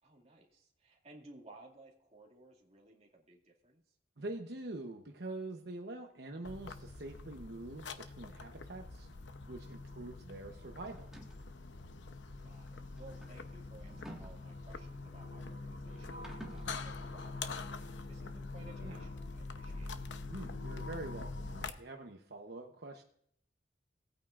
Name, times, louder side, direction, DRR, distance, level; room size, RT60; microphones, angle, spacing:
voice 1, 0.0-3.8 12.4-19.9, right 2 dB, 35° right, 0 dB, 2.1 m, -58 dB
voice 2, 4.2-9.1 9.5-11.1 18.8-19.1 20.2-23.0, right 2 dB, 60° right, 3 dB, 0.9 m, -45 dB
sound 1, 6.4-21.7, left 3 dB, 80° left, 0.8 m, -44 dB
sound 2, 10.9-11.5 12.5-15.0 16.1-16.7, right 1 dB, 5° right, 1.6 m, -51 dB
18.5 x 9.1 x 2.5 m, 0.68 s
head